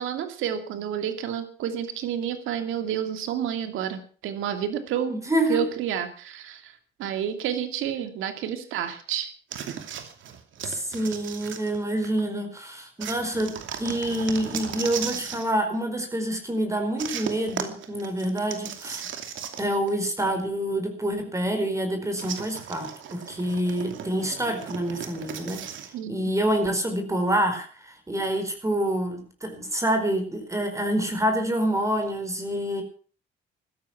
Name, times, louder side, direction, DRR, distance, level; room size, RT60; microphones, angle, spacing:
voice 1, 0.0-5.1 5.5-9.3 25.9-26.3, right 9 dB, 90° right, 8 dB, 2.7 m, -30 dB
voice 2, 5.1-5.6 10.6-19.0 19.6-25.6 26.1-32.8, right 1 dB, 15° right, 6 dB, 4.8 m, -27 dB
sound 1, 9.5-12.2 13.0-15.5 17.0-19.9 20.2-20.3 22.2-25.9, right 8 dB, 75° right, 2.7 m, -36 dB
16.0 x 13.0 x 6.0 m, 0.41 s
cardioid pair, 90°, 20 cm